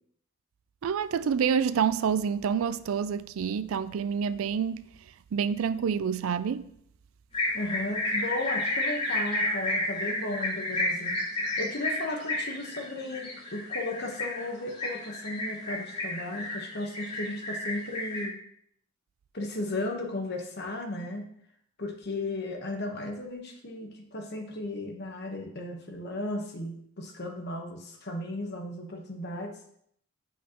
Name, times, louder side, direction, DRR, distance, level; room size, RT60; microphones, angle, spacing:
voice 1, 0.8-4.9 5.3-6.7, right 7 dB, 90° right, 0.4 m, -28 dB
sound 1, 7.3-18.2, left 2 dB, 30° left, 3.2 m, -31 dB
voice 2, 7.5-11.2 11.6-18.3 19.3-21.2 21.8-29.5, left 2 dB, 55° left, 1.1 m, -35 dB
8.5 x 5.6 x 3.0 m
head